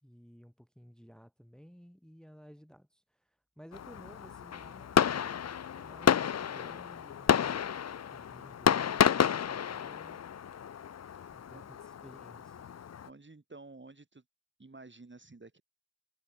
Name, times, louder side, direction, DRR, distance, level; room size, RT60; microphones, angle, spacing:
voice 1, 0.0-5.4 5.8-7.5 8.1-10.2 11.3-12.7, equal, ahead, 2.3 m, -55 dB
Fireworks, 3.7-13.1, left 8 dB, 45° left, 0.5 m, -31 dB
voice 2, 13.0-14.2 14.6-15.6, right 3 dB, 30° right, 2.8 m, -51 dB
wide cardioid pair, 105°, 39 cm